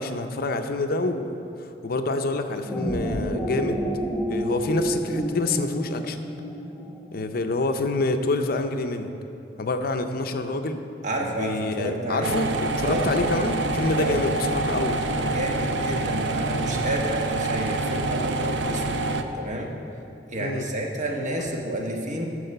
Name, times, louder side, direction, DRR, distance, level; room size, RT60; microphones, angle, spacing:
voice 1, 0.0-3.9 4.3-6.2 7.1-9.1 9.6-10.8 11.2-15.0 20.4-20.7 21.4-21.5, left 2 dB, 55° left, 7 dB, 0.6 m, -27 dB
sound 1, 2.5-7.1, equal, ahead, 1.0 m, -29 dB
voice 2, 11.0-12.4 12.8-13.1 14.0-14.2 15.0-19.0 19.3-19.7 20.3-22.3, right 1 dB, 45° right, 0 dB, 1.3 m, -30 dB
sound 2, 12.2-19.2, right 2 dB, 85° right, 0.6 m, -26 dB
12.5 x 4.9 x 6.6 m, 2.7 s
head